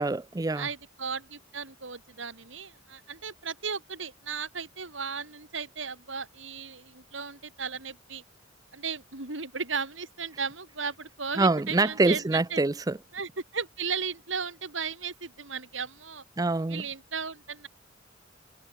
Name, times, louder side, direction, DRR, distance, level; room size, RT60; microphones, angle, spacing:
voice 1, 0.0-0.7 11.4-13.0 16.4-16.8, right 3 dB, 20° right, 0.5 m, -25 dB
voice 2, 0.5-8.2 8.7-12.6 13.1-16.2 16.7-17.7, right 5 dB, 75° right, 3.7 m, -35 dB
head